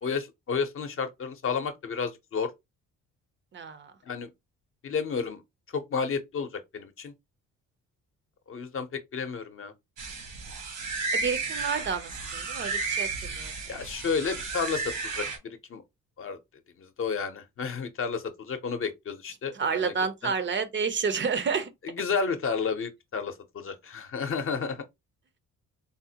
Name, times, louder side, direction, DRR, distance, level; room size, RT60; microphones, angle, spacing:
voice 1, 0.0-2.5 4.1-4.3 4.8-5.4 5.7-7.1 8.5-9.7 13.7-15.8 16.2-16.4 16.8-19.9 20.2-20.3 21.8-24.8, left 5 dB, 45° left, 0.7 m, -31 dB
voice 2, 3.5-3.9 11.1-13.1 13.4-13.5 19.5-21.7, right 5 dB, 40° right, 0.5 m, -29 dB
sound 1, 10.0-15.4, right 4 dB, 80° right, 1.3 m, -33 dB
3.7 x 2.1 x 2.7 m
cardioid pair, 90°, 30 cm